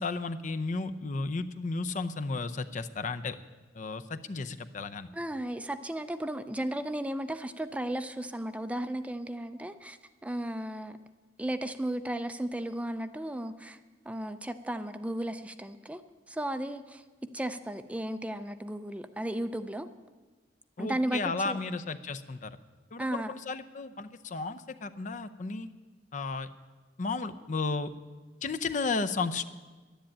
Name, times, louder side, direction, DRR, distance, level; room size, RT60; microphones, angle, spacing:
voice 1, 0.0-3.4 3.7-5.1 20.8-22.6 22.9-25.7 26.1-26.5 27.0-27.9 28.4-29.5, left 3 dB, 45° left, 10 dB, 0.6 m, -33 dB
voice 2, 5.1-11.0 11.4-13.8 14.1-16.0 16.3-17.0 17.3-19.9 20.8-21.6 23.0-23.3, right 1 dB, 10° right, 10 dB, 0.4 m, -35 dB
11.5 x 10.0 x 8.7 m, 1.3 s
head